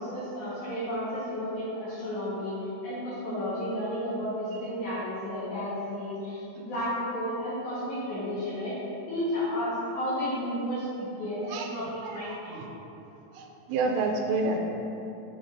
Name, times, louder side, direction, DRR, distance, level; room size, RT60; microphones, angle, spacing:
voice 1, 0.0-2.5 2.8-8.8 9.1-12.6, equal, 60° left, -11 dB, 2.2 m, -32 dB
voice 2, 11.5-12.7 13.3-14.6, right 3 dB, 85° right, 2 dB, 2.8 m, -30 dB
7.1 x 6.8 x 2.6 m, 2.9 s
omnidirectional pair, 5.0 m